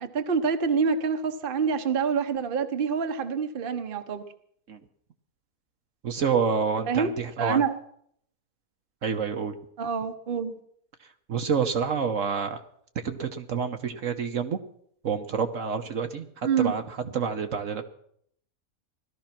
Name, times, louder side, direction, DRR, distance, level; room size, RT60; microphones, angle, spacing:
voice 1, 0.0-4.2 6.9-7.1 7.4-7.7 9.8-10.5 16.4-16.7, right 6 dB, 40° right, 7 dB, 1.1 m, -26 dB
voice 2, 6.0-7.6 9.0-9.6 11.3-12.6 13.0-14.6 15.0-16.8 17.1-17.8, right 6 dB, 65° right, 6 dB, 1.3 m, -28 dB
17.5 x 12.5 x 5.9 m, 0.67 s
omnidirectional pair, 1.5 m